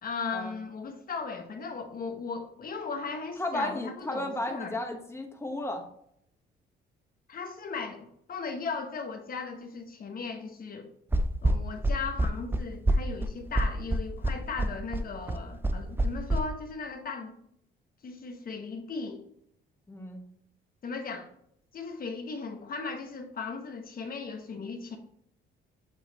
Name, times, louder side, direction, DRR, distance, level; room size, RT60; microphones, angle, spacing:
voice 1, 0.0-4.7 7.3-10.9 11.4-17.3 18.0-19.2 20.8-21.3 21.7-25.0, left 4 dB, 45° left, 4 dB, 1.1 m, -37 dB
voice 2, 3.4-5.9 19.9-20.2, left 1 dB, 15° left, 3 dB, 1.1 m, -34 dB
sound 1, 11.1-16.4, right 1 dB, 10° right, 0.5 m, -26 dB
7.4 x 3.1 x 4.1 m, 0.72 s
cardioid pair, 90°, 20 cm